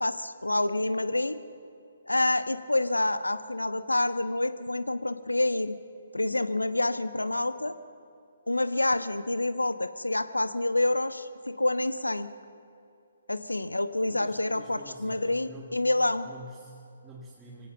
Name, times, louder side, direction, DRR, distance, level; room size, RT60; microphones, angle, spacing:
voice 1, 0.0-1.4 2.1-5.8 6.1-7.7 8.5-12.3 13.3-16.3, left 2 dB, 85° left, 13 dB, 1.0 m, -27 dB
voice 2, 14.0-15.8 16.2-17.7, right 1 dB, 10° right, -3 dB, 2.1 m, -47 dB
24.0 x 17.0 x 6.9 m, 2.7 s
figure-of-eight pair, 135°, 0 cm